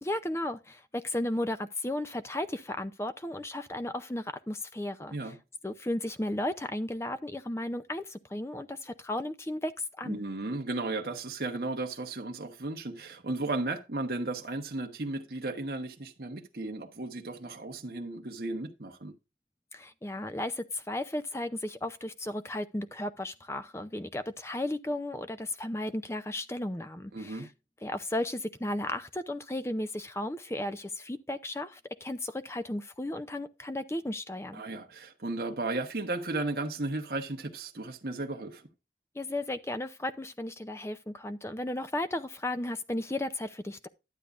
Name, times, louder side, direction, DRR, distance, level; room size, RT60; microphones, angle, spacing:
voice 1, 0.0-5.3 5.6-9.7 10.0-10.2 19.7-27.5 27.8-34.6 39.2-43.9, left 1 dB, 15° left, 0.5 m, -34 dB
voice 2, 10.0-19.1 27.1-27.5 34.5-38.7, right 2 dB, 60° right, 1.2 m, -35 dB
12.0 x 8.2 x 2.5 m
head